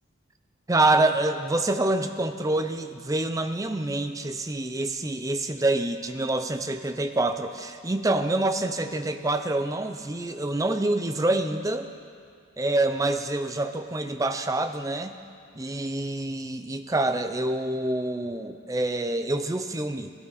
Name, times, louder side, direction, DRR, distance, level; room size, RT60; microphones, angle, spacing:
voice 1, 0.7-11.9 12.6-15.2 15.6-20.1, right 2 dB, 15° right, 8 dB, 0.5 m, -26 dB
17.0 x 12.5 x 4.0 m, 2.2 s
head